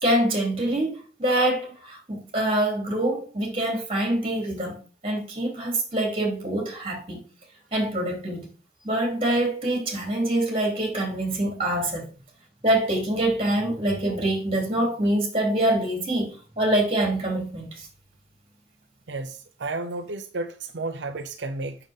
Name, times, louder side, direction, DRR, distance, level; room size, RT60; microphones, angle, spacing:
voice 1, 0.0-4.7 5.0-7.2 7.7-8.5 8.8-12.1 12.6-17.9, right 1 dB, 30° right, 3.4 m, -25 dB
voice 2, 19.1-21.8, right 2 dB, 85° right, 0.7 m, -32 dB
7.3 x 6.8 x 3.7 m
head